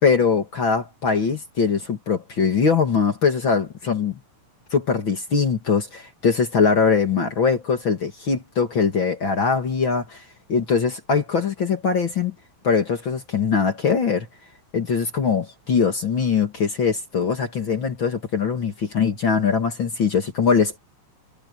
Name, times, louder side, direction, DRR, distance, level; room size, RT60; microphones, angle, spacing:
voice 1, 0.0-4.1 4.7-10.2 10.5-12.3 12.6-14.3 14.7-20.8, left 5 dB, 45° left, 1.7 m, -22 dB
omnidirectional pair, 5.1 m